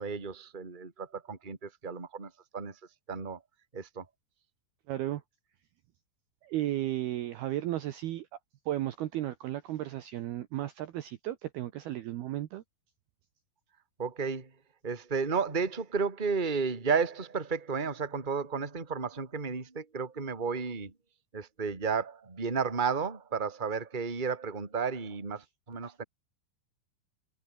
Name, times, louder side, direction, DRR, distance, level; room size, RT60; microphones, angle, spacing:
voice 1, 0.0-2.8 3.1-3.4 3.7-4.0 14.0-14.5 14.8-20.9 21.3-26.0, right 5 dB, 15° right, 2.0 m, -33 dB
voice 2, 4.9-5.2 6.4-8.3 8.7-12.6 25.8-25.9, right 14 dB, 70° right, 2.6 m, -34 dB
omnidirectional pair, 5.5 m